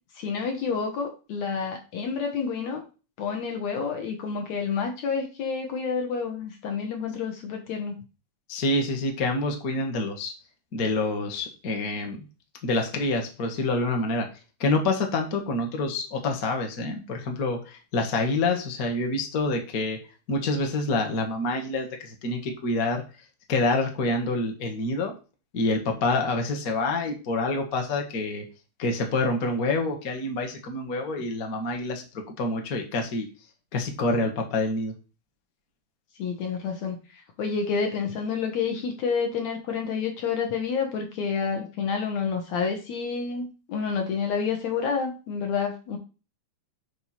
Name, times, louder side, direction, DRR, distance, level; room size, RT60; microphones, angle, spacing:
voice 1, 0.2-2.8 3.2-8.0 36.2-37.0 37.4-46.0, left 5 dB, 65° left, 3 dB, 2.4 m, -29 dB
voice 2, 8.5-10.3 10.7-12.2 12.6-14.3 14.6-20.0 20.3-23.0 23.5-25.1 25.5-28.4 28.8-33.3 33.7-34.9, left 2 dB, 40° left, 3 dB, 1.3 m, -27 dB
7.9 x 3.5 x 5.8 m, 0.32 s
omnidirectional pair, 3.7 m